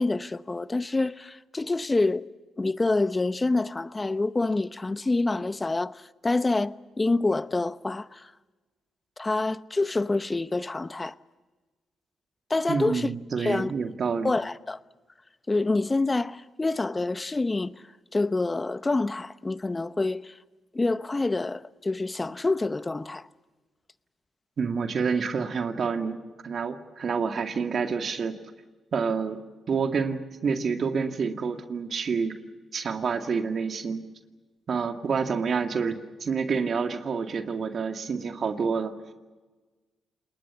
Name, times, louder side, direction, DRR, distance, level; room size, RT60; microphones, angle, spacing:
voice 1, 0.0-2.2 2.6-5.9 6.2-8.3 9.2-11.1 12.5-13.1 13.4-13.7 14.2-14.8 15.5-17.7 18.1-20.3 20.7-23.2, left 2 dB, 25° left, 0.9 m, -27 dB
voice 2, 12.7-14.3 24.6-26.2 26.4-28.3 28.9-29.4 29.7-32.3 32.7-34.0 34.7-38.9, right 5 dB, 55° right, 2.1 m, -28 dB
29.5 x 19.5 x 7.0 m
supercardioid pair, 55°, 0 cm